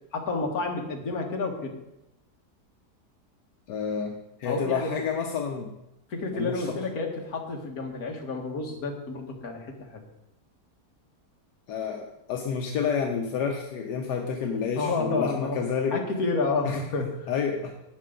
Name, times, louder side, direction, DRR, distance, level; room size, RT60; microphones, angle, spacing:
voice 1, 0.1-1.8 4.4-4.9 6.1-10.0 14.8-15.6 15.9-17.3, left 3 dB, 60° left, 2 dB, 1.9 m, -30 dB
voice 2, 3.7-5.7 6.3-6.8 11.7-16.0 16.6-17.7, left 6 dB, 80° left, 2 dB, 1.4 m, -29 dB
11.0 x 8.8 x 3.8 m, 0.89 s
omnidirectional pair, 1.8 m